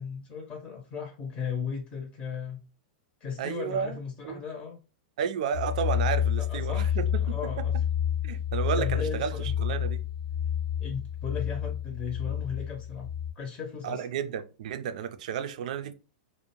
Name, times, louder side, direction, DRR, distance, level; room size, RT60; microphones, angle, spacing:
voice 1, 0.0-2.6 3.2-4.8 6.4-7.7 8.3-8.4 8.8-9.6 10.8-13.1 13.4-14.0, left 6 dB, 25° left, 0.6 m, -36 dB
voice 2, 3.4-4.0 4.2-4.4 5.2-7.7 8.2-9.3 9.6-10.0 13.8-15.9, right 8 dB, 70° right, 0.4 m, -32 dB
sound 1, 5.5-13.3, left 9 dB, 70° left, 0.8 m, -29 dB
2.5 x 2.1 x 2.9 m
hypercardioid pair, 125°, 4 cm